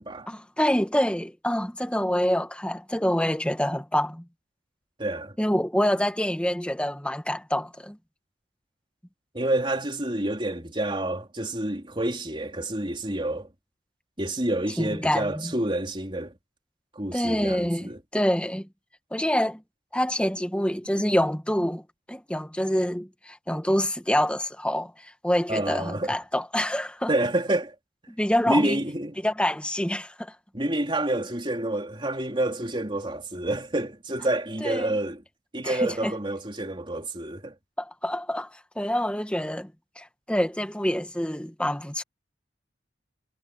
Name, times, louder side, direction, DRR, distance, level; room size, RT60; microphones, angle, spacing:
voice 1, 0.3-4.2 5.4-8.0 14.8-15.5 17.1-18.7 19.1-19.6 19.9-21.8 22.1-27.1 28.1-28.8 29.2-30.3 34.6-35.0 35.6-36.1 37.8-39.7 40.0-42.0, equal, 5° left, 1.5 m, -26 dB
voice 2, 5.0-5.4 9.3-13.5 14.2-16.3 16.9-18.0 25.5-26.2 27.1-27.8 28.5-29.2 30.5-35.2 35.5-37.6, right 1 dB, 25° right, 3.5 m, -28 dB
head